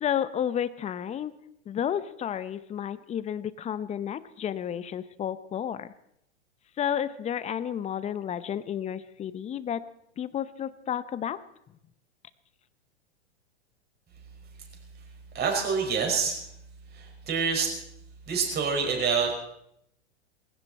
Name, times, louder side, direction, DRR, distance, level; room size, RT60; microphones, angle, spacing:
voice 1, 0.0-1.3 1.7-5.9 6.8-9.8 10.2-11.4, left 9 dB, 20° left, 15 dB, 0.8 m, -31 dB
voice 2, 15.3-16.4 16.9-17.7 18.3-19.3, right 5 dB, 30° right, 2 dB, 5.3 m, -26 dB
19.5 x 16.5 x 4.3 m, 0.76 s
hypercardioid pair, 115°, 35 cm